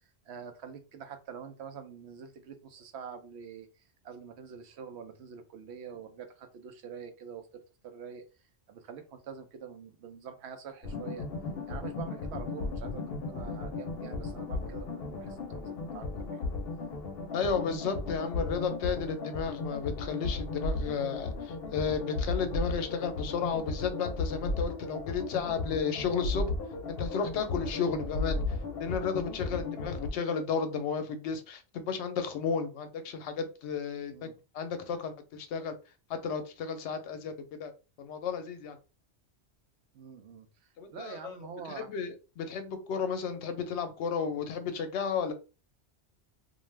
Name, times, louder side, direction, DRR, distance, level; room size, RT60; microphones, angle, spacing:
voice 1, 0.3-7.5 7.8-8.2 8.7-11.2 11.7-16.4 29.5-29.7 34.1-34.3 39.9-40.5 40.9-41.9, right 7 dB, 75° right, 7 dB, 0.9 m, -45 dB
sound 1, 10.8-30.1, left 3 dB, 65° left, 0.8 m, -35 dB
voice 2, 17.3-26.5 26.9-34.3 34.5-35.7 36.1-37.3 37.6-37.7 38.0-38.8 40.8-41.3 41.7-45.3, left 6 dB, 85° left, 8 dB, 0.9 m, -33 dB
2.5 x 2.2 x 3.2 m, 0.31 s
omnidirectional pair, 1.1 m